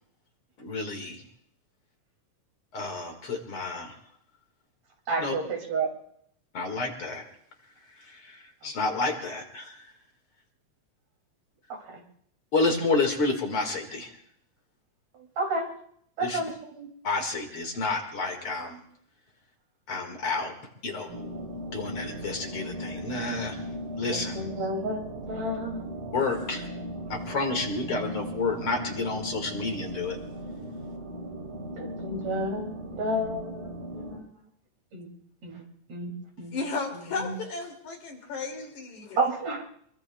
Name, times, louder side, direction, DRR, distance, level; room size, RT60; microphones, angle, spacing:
voice 1, 0.6-1.2 2.7-3.9 5.2-5.3 6.5-7.2 8.0-9.8 12.5-14.1 16.2-16.4 17.0-18.8 19.9-20.5 20.8-21.1 21.7-23.6 24.0-24.3 26.1-26.7 27.1-30.2, left 3 dB, 50° left, 4 dB, 2.6 m, -30 dB
voice 2, 5.1-5.9 8.6-8.7 11.7-12.0 15.1-15.7 16.2-16.9 24.1-25.9 27.6-27.9 31.8-34.4 34.9-35.1 35.4-35.6 35.9-36.6 37.2-37.4 39.2-39.6, right 2 dB, 60° right, 2 dB, 4.0 m, -32 dB
sound 1, 21.1-34.2, equal, 90° right, 5.6 m, -37 dB
voice 3, 36.5-39.2, left 4 dB, 75° left, 2 dB, 4.0 m, -34 dB
26.0 x 23.0 x 2.3 m, 0.67 s
omnidirectional pair, 3.4 m